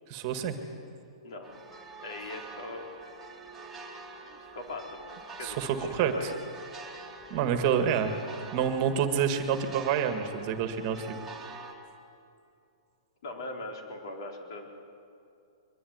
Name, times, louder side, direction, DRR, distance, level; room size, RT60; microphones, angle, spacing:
voice 1, 0.1-0.6 5.4-6.3 7.3-8.2 8.5-11.1, right 7 dB, 30° right, 7 dB, 1.8 m, -28 dB
sound 1, 1.4-11.7, right 3 dB, ahead, 2.4 m, -46 dB
voice 2, 2.0-2.9 4.5-5.1 5.4-6.4 10.8-11.1 13.2-14.7, left 2 dB, 60° left, 1 dB, 4.6 m, -40 dB
23.0 x 23.0 x 9.5 m, 2.6 s
hypercardioid pair, 165°, 3 cm